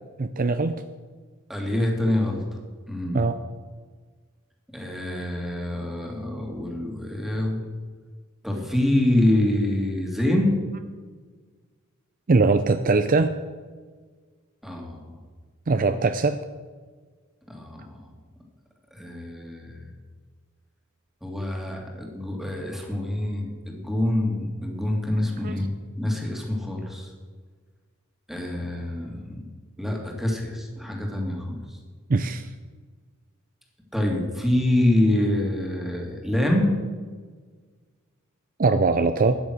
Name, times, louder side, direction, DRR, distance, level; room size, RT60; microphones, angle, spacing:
voice 1, 0.2-0.8 3.1-3.4 12.3-13.3 15.7-16.4 25.4-25.6 32.1-32.5 38.6-39.4, right 3 dB, 40° right, 10 dB, 0.5 m, -21 dB
voice 2, 1.5-2.4 2.9-3.2 4.7-7.6 8.4-10.5 14.6-15.1 17.5-17.9 18.9-19.9 21.2-27.1 28.3-29.4 29.8-31.6 33.9-36.7, left 1 dB, ahead, 0 dB, 2.4 m, -25 dB
12.5 x 10.0 x 6.2 m, 1.5 s
head